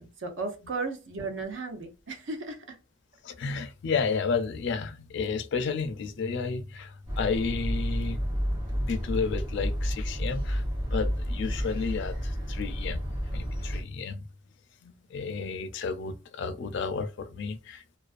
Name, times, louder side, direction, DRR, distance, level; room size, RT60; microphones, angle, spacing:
voice 1, 0.0-2.8, right 3 dB, 70° right, 0.6 m, -35 dB
voice 2, 3.2-8.2 8.8-10.6 10.9-13.0 13.3-14.2 14.8-17.8, left 5 dB, 65° left, 0.4 m, -32 dB
sound 1, 7.1-13.8, equal, 25° right, 0.9 m, -31 dB
2.4 x 2.2 x 2.4 m
head